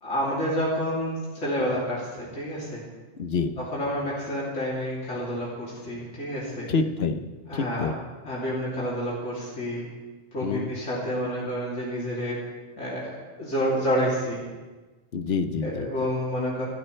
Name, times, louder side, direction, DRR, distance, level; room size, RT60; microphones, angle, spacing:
voice 1, 0.0-2.8 3.6-6.7 7.5-7.9 8.2-9.9 10.3-12.4 12.8-14.4 15.6-16.7, equal, 75° left, -6 dB, 3.5 m, -29 dB
voice 2, 3.2-3.5 6.7-7.2 7.5-7.9 10.4-10.7 15.1-15.9, left 5 dB, 60° left, 8 dB, 1.2 m, -27 dB
25.5 x 13.0 x 3.3 m, 1.3 s
omnidirectional pair, 1.2 m